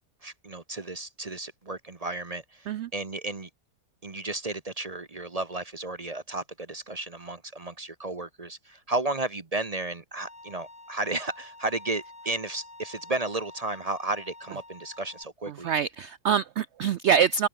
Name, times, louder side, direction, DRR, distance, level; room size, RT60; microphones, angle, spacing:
voice 1, 0.2-3.5 4.0-15.7, right 2 dB, 30° right, 0.9 m, -33 dB
Bowed string instrument, 10.2-15.2, left 2 dB, 20° left, 3.3 m, -48 dB
voice 2, 15.5-17.5, right 7 dB, 90° right, 0.6 m, -25 dB
open air
omnidirectional pair, 1.7 m